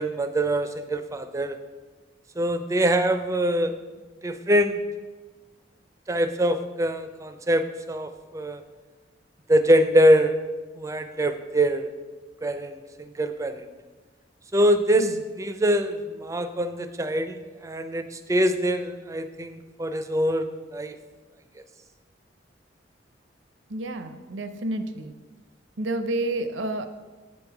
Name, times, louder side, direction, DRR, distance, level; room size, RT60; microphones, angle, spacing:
voice 1, 0.0-1.6 2.4-3.8 4.2-4.8 6.1-8.6 9.5-10.3 10.8-11.9 12.4-13.7 14.5-20.5 20.7-21.0, right 1 dB, 15° right, 9 dB, 0.4 m, -24 dB
voice 2, 23.7-25.1 25.8-26.9, right 2 dB, 80° right, 9 dB, 0.6 m, -29 dB
8.2 x 5.3 x 4.6 m, 1.3 s
head